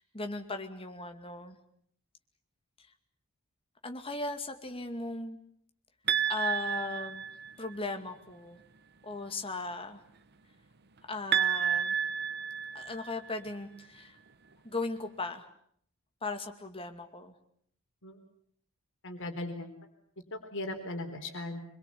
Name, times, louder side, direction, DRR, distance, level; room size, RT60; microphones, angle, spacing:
voice 1, 0.0-1.6 3.8-5.4 6.3-7.3 7.6-8.6 9.0-10.0 11.1-12.0 12.7-14.2 14.6-15.5 16.2-17.4, left 3 dB, 25° left, 6 dB, 2.3 m, -37 dB
sound 1, 6.1-7.7 11.3-13.3, right 8 dB, 50° right, 1.0 m, -30 dB
voice 2, 19.0-19.7 20.3-21.6, left 1 dB, 60° left, 5 dB, 3.9 m, -38 dB
25.5 x 22.5 x 8.5 m, 0.68 s
head